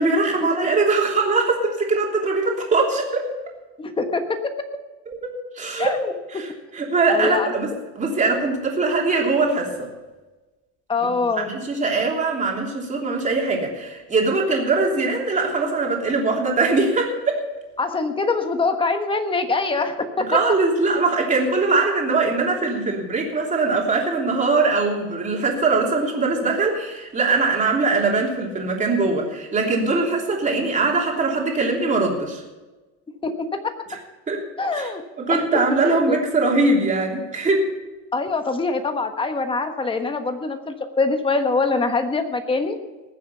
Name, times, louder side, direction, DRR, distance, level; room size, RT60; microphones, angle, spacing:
voice 1, 0.0-3.3 5.1-6.0 6.3-9.9 11.0-17.4 20.2-32.4 34.3-34.4 34.7-34.9 35.2-37.6, right 3 dB, 20° right, 0 dB, 3.1 m, -22 dB
voice 2, 3.8-4.5 5.8-6.4 7.1-7.5 10.9-11.5 17.8-20.3 33.2-33.7 34.6-35.0 35.3-36.2 38.1-42.8, left 3 dB, 15° left, 7 dB, 1.3 m, -24 dB
19.5 x 7.5 x 5.7 m, 1.2 s
cardioid pair, 140°, 34 cm